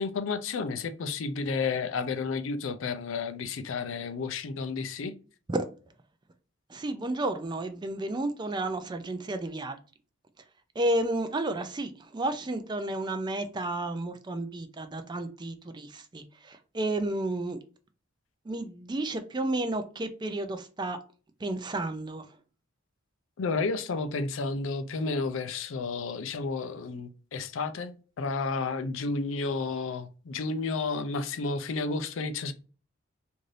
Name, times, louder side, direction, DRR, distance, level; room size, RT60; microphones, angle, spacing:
voice 1, 0.0-5.1 23.4-32.5, left 4 dB, 75° left, 0.4 m, -31 dB
voice 2, 6.7-9.8 10.8-17.6 18.5-21.0 21.4-22.2, right 2 dB, 20° right, 0.3 m, -32 dB
2.6 x 2.5 x 3.1 m
head